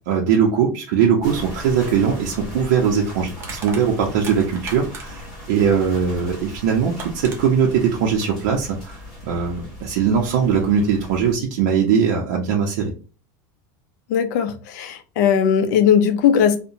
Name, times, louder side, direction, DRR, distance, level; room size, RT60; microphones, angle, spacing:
voice 1, 0.1-9.0 9.2-12.9, right 7 dB, 65° right, 0.6 m, -20 dB
sound 1, 1.2-11.4, left 1 dB, ahead, 1.5 m, -38 dB
Crushing, 3.4-5.3 6.5-6.6 7.0-7.4, right 4 dB, 25° right, 0.6 m, -36 dB
voice 2, 14.1-16.6, left 8 dB, 60° left, 0.5 m, -18 dB
2.8 x 2.1 x 2.5 m
supercardioid pair, 160°, 11 cm